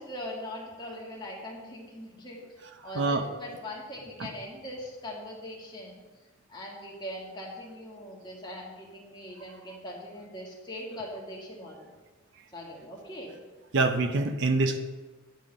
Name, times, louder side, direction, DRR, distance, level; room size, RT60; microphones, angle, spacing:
voice 1, 0.0-2.4 2.8-6.0 6.5-11.9 12.5-13.4, left 1 dB, 20° left, -3 dB, 1.6 m, -41 dB
voice 2, 2.8-3.3 4.2-4.3 13.7-14.8, right 3 dB, 60° right, 7 dB, 0.5 m, -25 dB
9.7 x 3.7 x 6.4 m, 1.3 s
head